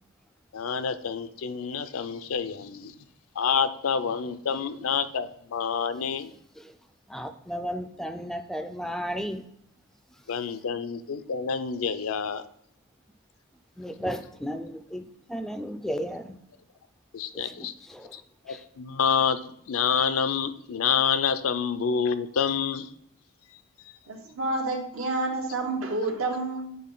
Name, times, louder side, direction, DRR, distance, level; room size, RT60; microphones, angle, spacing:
voice 1, 0.5-2.9 3.4-6.3 10.3-12.5 17.1-17.7 18.1-22.9, left 6 dB, 85° left, 12 dB, 0.5 m, -28 dB
voice 2, 7.1-9.4 13.8-16.4 17.3-18.1 18.5-18.6, equal, ahead, 9 dB, 0.3 m, -34 dB
voice 3, 24.1-26.8, right 2 dB, 75° right, 3 dB, 1.0 m, -29 dB
9.2 x 3.7 x 3.8 m, 0.69 s
head